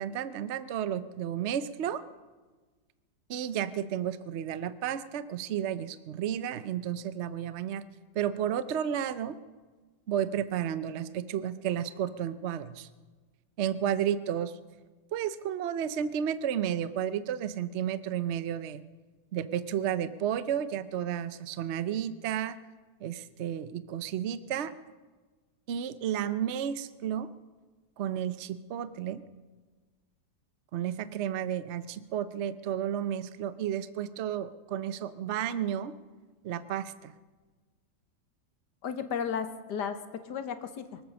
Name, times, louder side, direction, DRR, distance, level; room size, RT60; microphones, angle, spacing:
voice 1, 0.0-2.0 3.3-7.8 8.1-9.4 10.1-12.9 13.6-14.5 15.1-18.8 19.3-22.6 23.0-24.7 25.7-27.3 28.0-29.2 30.7-35.9 36.4-37.1, right 9 dB, 55° right, 13 dB, 0.8 m, -32 dB
voice 2, 38.8-41.0, left 7 dB, 85° left, 9 dB, 1.7 m, -34 dB
24.0 x 8.4 x 6.4 m, 1.3 s
omnidirectional pair, 1.8 m